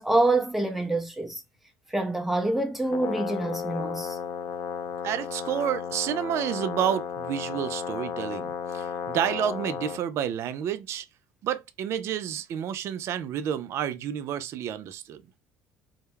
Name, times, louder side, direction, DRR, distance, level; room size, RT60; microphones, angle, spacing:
voice 1, 0.0-1.4 1.9-4.2, right 2 dB, 5° right, 0.6 m, -26 dB
Brass instrument, 2.8-10.0, left 7 dB, 50° left, 0.5 m, -34 dB
voice 2, 5.0-11.1 11.4-15.2, right 9 dB, 55° right, 0.3 m, -30 dB
2.2 x 2.1 x 3.0 m
supercardioid pair, 100°, 6 cm